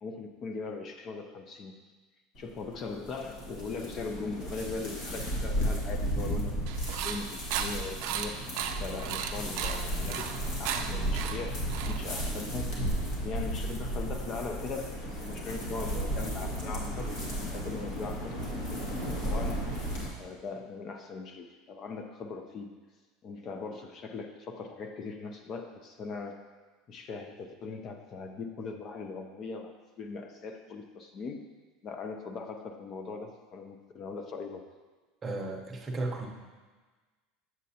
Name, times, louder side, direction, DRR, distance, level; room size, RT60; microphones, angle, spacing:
voice 1, 0.0-1.8 2.4-6.6 7.0-8.4 8.8-12.8 13.2-18.6 18.9-19.7 20.2-22.7 23.2-26.4 26.9-31.5 31.8-34.7, left 4 dB, 35° left, 5 dB, 0.5 m, -40 dB
sound 1, 2.4-20.1, right 1 dB, 60° left, 1.9 m, -34 dB
sound 2, 6.7-12.4, right 8 dB, 65° right, 0.5 m, -36 dB
voice 2, 35.2-36.3, right 2 dB, 20° right, 1 dB, 0.8 m, -34 dB
7.5 x 7.4 x 2.8 m, 1.3 s
supercardioid pair, 145°, 0 cm